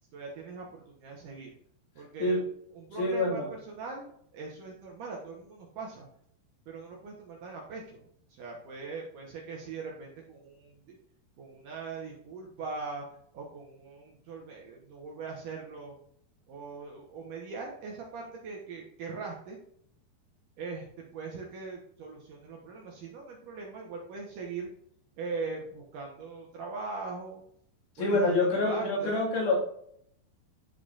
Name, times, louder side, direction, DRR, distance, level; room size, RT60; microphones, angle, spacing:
voice 1, 0.1-1.5 2.0-2.4 2.7-6.1 6.7-8.0 8.3-11.0 11.4-13.1 13.3-16.0 16.5-19.6 20.6-24.7 25.2-27.4 28.0-29.2, right 4 dB, 70° right, -1 dB, 2.0 m, -41 dB
voice 2, 3.0-3.5 28.0-29.6, left 2 dB, 70° left, -4 dB, 4.2 m, -26 dB
11.5 x 5.0 x 2.6 m, 0.67 s
omnidirectional pair, 5.1 m